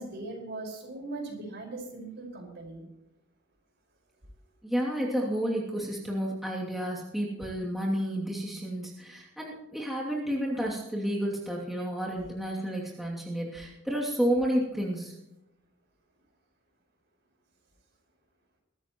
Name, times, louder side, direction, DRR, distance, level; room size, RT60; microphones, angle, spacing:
voice 1, 0.0-2.8, right 2 dB, 55° right, 1 dB, 5.2 m, -39 dB
voice 2, 4.6-15.1, equal, ahead, -5 dB, 2.7 m, -31 dB
22.5 x 13.0 x 3.1 m, 0.93 s
head